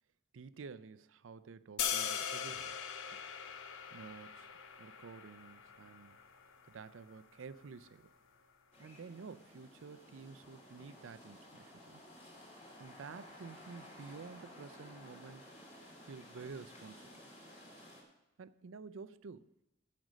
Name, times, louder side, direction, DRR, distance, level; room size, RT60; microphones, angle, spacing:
voice 1, 0.3-2.7 3.1-3.2 3.9-4.5 4.8-6.2 6.7-8.0 8.8-12.0 12.8-15.4 16.1-17.2 18.4-19.6, right 5 dB, 80° right, 15 dB, 0.5 m, -51 dB
sound 1, 1.8-7.9, left 8 dB, 90° left, 0.8 m, -41 dB
sound 2, 8.7-18.0, left 1 dB, 35° left, 2.5 m, -55 dB
15.5 x 5.2 x 6.2 m, 0.93 s
head